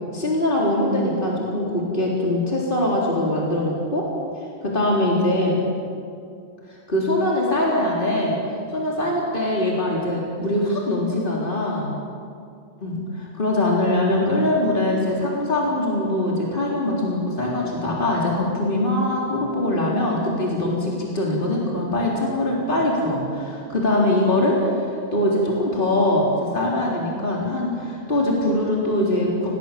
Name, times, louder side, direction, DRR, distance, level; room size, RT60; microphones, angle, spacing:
voice 1, 0.1-4.1 4.6-5.6 6.7-8.4 8.7-11.9 12.8-29.6, left 1 dB, 45° left, -3 dB, 4.2 m, -22 dB
28.5 x 19.5 x 7.6 m, 2.4 s
omnidirectional pair, 1.2 m